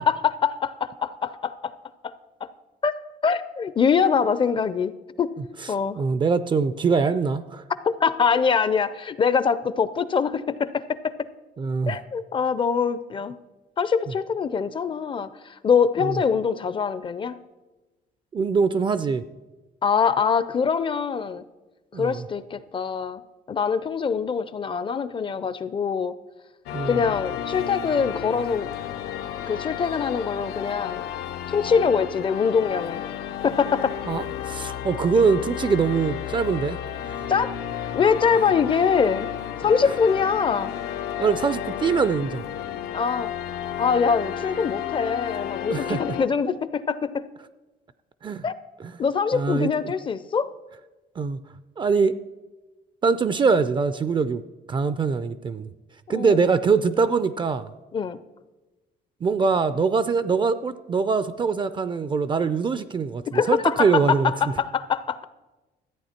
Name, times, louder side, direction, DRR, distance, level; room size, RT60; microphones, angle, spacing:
voice 1, 0.0-1.7 2.0-2.1 2.4-2.5 2.8-2.9 3.2-4.9 5.2-5.3 5.7-6.0 7.8-11.3 11.9-13.4 13.8-17.4 19.8-21.4 21.9-23.2 23.5-26.1 26.8-28.7 29.5-31.0 31.5-33.0 33.4-34.0 37.3-37.5 37.9-39.3 39.6-40.7 42.9-43.3 43.8-47.3 48.4-48.5 49.0-50.5 56.1-56.5 57.9-58.2 63.3-65.2, left 6 dB, 30° left, 15 dB, 0.5 m, -23 dB
voice 2, 6.0-7.6 11.6-12.0 16.0-16.2 18.3-19.2 21.9-22.2 26.7-27.0 34.1-36.8 37.1-37.2 41.2-42.4 45.7-46.0 48.2-48.4 48.8-48.9 49.3-49.7 51.2-51.4 51.8-52.2 53.0-54.4 54.7-55.7 56.1-57.7 59.2-64.3, right 5 dB, 30° right, 14 dB, 0.4 m, -23 dB
sound 1, 26.7-46.3, left 10 dB, 75° left, 0.6 m, -32 dB
13.5 x 8.6 x 4.3 m, 1.1 s
cardioid pair, 110°, 17 cm